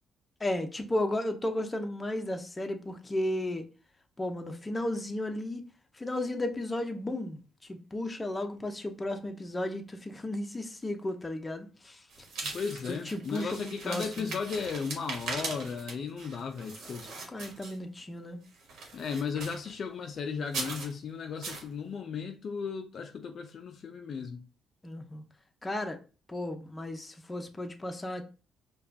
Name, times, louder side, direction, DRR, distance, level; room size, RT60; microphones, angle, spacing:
voice 1, 0.4-3.7 4.2-5.6 5.9-12.0 12.9-14.4 17.3-18.4 24.8-25.2 25.6-26.0 26.3-28.2, left 1 dB, 20° left, 0.6 m, -34 dB
sound 1, 12.1-18.0 18.5-19.7 20.4-20.9 21.4-21.7, right 3 dB, 75° right, 1.1 m, -40 dB
voice 2, 12.4-17.1 18.9-24.5, left 6 dB, 55° left, 0.4 m, -35 dB
4.8 x 2.3 x 2.7 m
cardioid pair, 90°, 0 cm